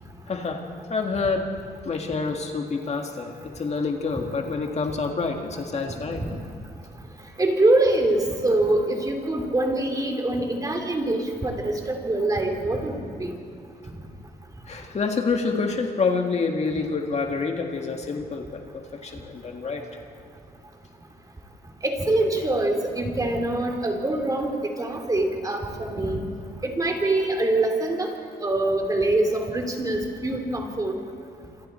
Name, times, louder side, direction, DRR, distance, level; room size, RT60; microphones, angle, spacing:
voice 1, 0.3-1.5 1.9-6.2 14.7-19.9, left 4 dB, 40° left, 3 dB, 1.9 m, -27 dB
voice 2, 7.4-13.3 21.8-26.2 26.6-28.1 28.4-31.0, right 2 dB, 20° right, 3 dB, 3.0 m, -24 dB
27.0 x 27.0 x 4.4 m, 2.4 s
wide cardioid pair, 135°, 17 cm